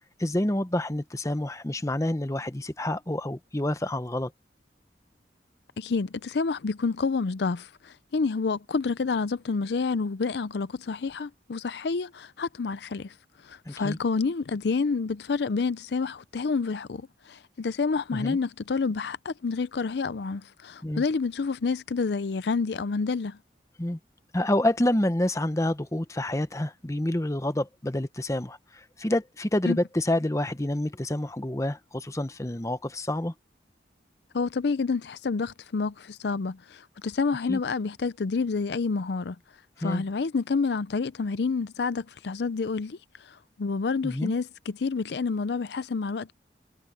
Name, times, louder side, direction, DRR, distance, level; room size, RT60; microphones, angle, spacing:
voice 1, 0.2-4.3 13.7-14.0 18.1-18.4 20.8-21.0 23.8-24.0 24.3-33.3 37.5-37.6 39.8-40.0 44.0-44.3, left 1 dB, 15° left, 0.8 m, -28 dB
voice 2, 5.8-13.1 13.4-23.4 29.7-29.8 34.3-39.4 39.8-46.3, left 4 dB, 70° left, 0.5 m, -29 dB
head